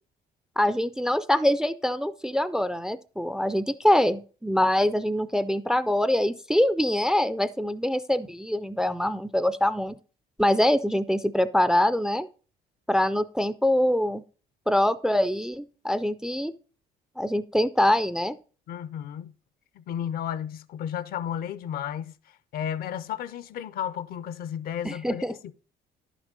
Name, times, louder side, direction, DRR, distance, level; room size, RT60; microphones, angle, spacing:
voice 1, 0.6-10.0 10.4-12.3 12.9-14.2 14.7-16.6 17.2-18.4 24.8-25.4, left 1 dB, 5° right, 0.3 m, -24 dB
voice 2, 18.7-19.3 19.8-22.1 22.5-25.5, left 9 dB, 60° left, 0.5 m, -33 dB
10.5 x 6.1 x 3.8 m
cardioid pair, 110°, 17 cm